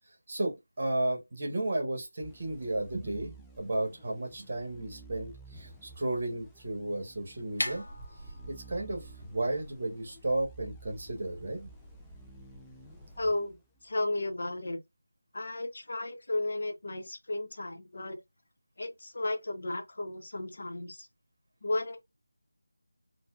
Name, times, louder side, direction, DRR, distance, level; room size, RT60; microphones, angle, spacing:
voice 1, 0.3-7.8 8.5-11.7, right 1 dB, 45° right, 1.2 m, -33 dB
sound 1, 2.2-14.1, right 3 dB, 5° left, 0.3 m, -54 dB
sound 2, 7.3-13.3, left 1 dB, 85° left, 0.9 m, -43 dB
voice 2, 13.2-13.6 13.8-14.8 15.3-18.2 18.8-21.1 21.6-22.0, left 2 dB, 55° left, 0.8 m, -34 dB
4.1 x 2.2 x 2.3 m
figure-of-eight pair, 165°, 0 cm